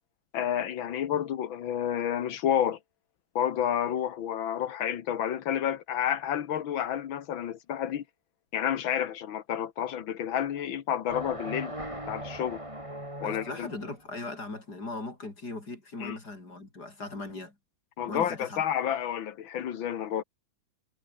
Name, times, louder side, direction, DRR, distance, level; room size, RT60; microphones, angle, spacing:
voice 1, 0.3-2.8 3.4-8.0 8.5-11.7 12.1-12.6 13.2-13.7 16.0-16.2 18.0-20.2, left 9 dB, 70° left, 2.0 m, -30 dB
sound 1, 11.1-13.9, right 1 dB, 15° right, 6.9 m, -39 dB
voice 2, 13.2-17.6 18.1-18.6, left 2 dB, 50° left, 5.5 m, -39 dB
omnidirectional pair, 2.3 m